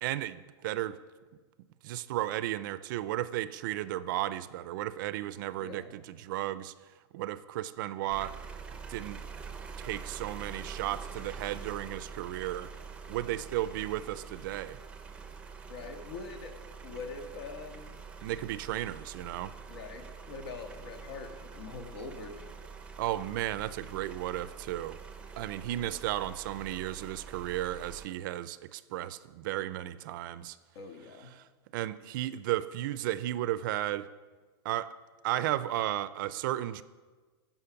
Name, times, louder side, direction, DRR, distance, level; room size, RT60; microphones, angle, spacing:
voice 1, 0.0-1.0 1.8-6.7 7.1-8.4 8.9-9.2 9.8-12.7 13.1-14.8 18.2-19.5 23.0-25.0 25.4-30.6 31.3-31.4 31.7-34.1 34.6-34.9 35.2-36.8, right 14 dB, 50° right, 15 dB, 0.5 m, -34 dB
voice 2, 5.6-5.9 15.7-16.5 16.8-18.0 19.7-22.5 30.8-31.3, left 4 dB, 75° left, 5 dB, 1.7 m, -43 dB
sound 1, 8.1-28.1, right 5 dB, 10° right, 0.6 m, -45 dB
15.0 x 5.8 x 5.8 m, 1.4 s
supercardioid pair, 160°, 13 cm